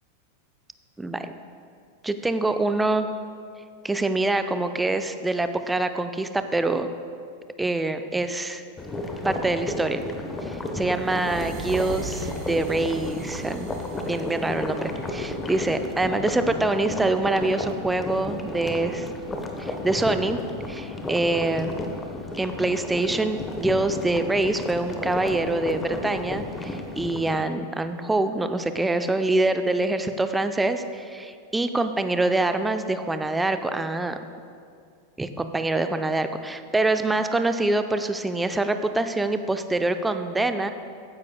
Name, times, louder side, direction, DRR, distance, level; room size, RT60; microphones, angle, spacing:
voice 1, 1.0-1.3 2.0-3.1 3.8-6.9 7.6-8.6 9.2-10.0 10.4-13.7 14.1-19.1 19.6-20.4 20.7-21.8 22.4-34.2 35.2-40.7, right 2 dB, 10° right, 9 dB, 0.5 m, -25 dB
sound 1, 8.8-27.4, left 2 dB, 15° left, 0.9 m, -33 dB
sound 2, 11.0-16.0, right 5 dB, 45° right, 1.6 m, -41 dB
15.0 x 9.7 x 2.2 m, 2.4 s
figure-of-eight pair, 90°, 0 cm